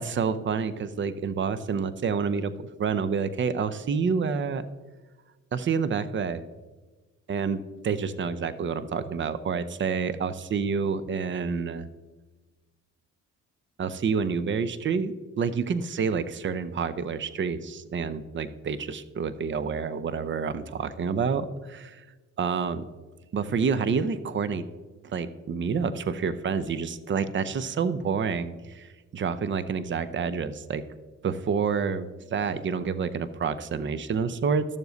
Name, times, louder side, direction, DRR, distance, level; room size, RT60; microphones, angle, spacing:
voice 1, 0.0-4.7 5.5-6.4 7.3-11.9 13.8-22.0 22.4-22.9 23.3-24.7 25.0-30.8 31.2-34.8, right 6 dB, 40° right, 14 dB, 0.6 m, -28 dB
12.5 x 7.0 x 4.0 m, 1.3 s
cardioid pair, 90°, 30 cm